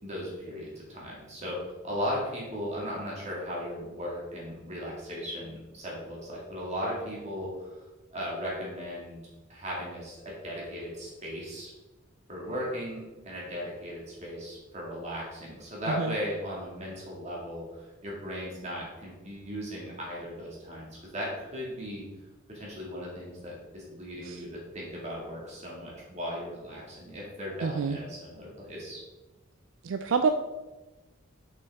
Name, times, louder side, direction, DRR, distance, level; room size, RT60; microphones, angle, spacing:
voice 1, 0.0-7.8 8.1-9.2 9.5-11.7 12.3-22.0 22.5-29.0, equal, 30° right, -4 dB, 2.0 m, -37 dB
voice 2, 27.6-28.0 29.8-30.3, right 5 dB, 70° right, 7 dB, 0.4 m, -27 dB
6.7 x 5.5 x 3.5 m, 1.1 s
head